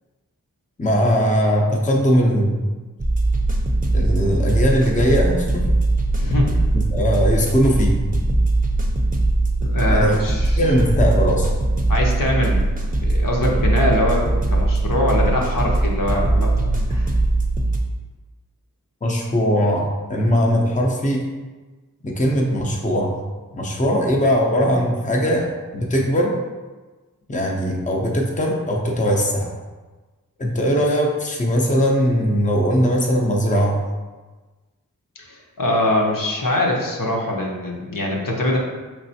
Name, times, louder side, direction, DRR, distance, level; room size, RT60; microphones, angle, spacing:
voice 1, 0.8-2.6 3.9-5.7 6.9-8.0 9.9-10.2 10.6-11.5 19.0-21.3 22.0-23.2 23.5-26.4 27.3-29.5 30.4-33.9, equal, 20° left, -1 dB, 0.7 m, -20 dB
sound 1, 3.0-17.8, right 2 dB, 25° right, 0.6 m, -20 dB
voice 2, 6.2-6.6 9.6-10.7 11.9-12.6 13.0-17.1 35.2-38.6, left 1 dB, 65° left, -1 dB, 0.9 m, -23 dB
5.3 x 3.2 x 2.8 m, 1.3 s
wide cardioid pair, 55°, 35 cm